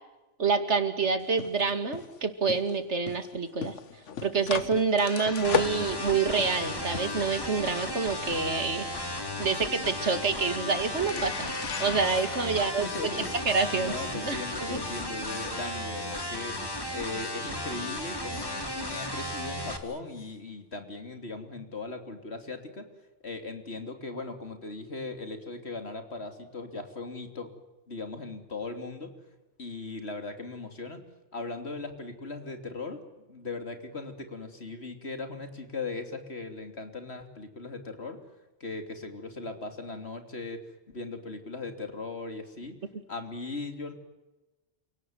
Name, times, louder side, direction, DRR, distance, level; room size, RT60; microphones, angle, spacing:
voice 1, 0.4-3.7 4.2-8.9 9.4-11.5 11.8-14.4 14.7-14.8, right 4 dB, 70° right, 9 dB, 2.6 m, -27 dB
sound 1, 1.2-17.4 17.7-20.3, left 7 dB, 90° left, 1.5 m, -39 dB
sound 2, 5.4-19.8, left 1 dB, 20° left, 2.8 m, -35 dB
voice 2, 12.5-13.3 13.7-16.6 16.9-22.9 23.2-27.5 27.9-29.1 29.6-31.0 31.3-38.2 38.6-42.8 43.1-43.9, left 3 dB, 65° left, 7 dB, 3.5 m, -38 dB
29.0 x 18.0 x 9.4 m, 1.1 s
omnidirectional pair, 1.2 m